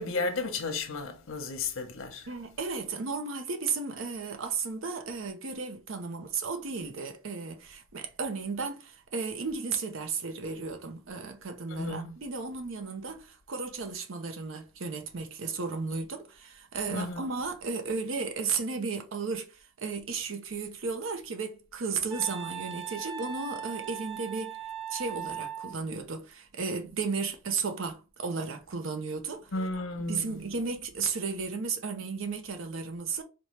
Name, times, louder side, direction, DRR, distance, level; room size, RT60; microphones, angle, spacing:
voice 1, 0.0-2.3 11.7-12.1 16.9-17.2 29.5-30.5, left 3 dB, 85° left, 0.8 m, -33 dB
voice 2, 2.3-24.6 24.9-29.5 30.1-33.2, right 4 dB, 75° right, 0.7 m, -34 dB
Wind instrument woodwind instrument, 22.1-25.7, right 9 dB, 15° right, 1.2 m, -39 dB
4.2 x 2.2 x 3.1 m
head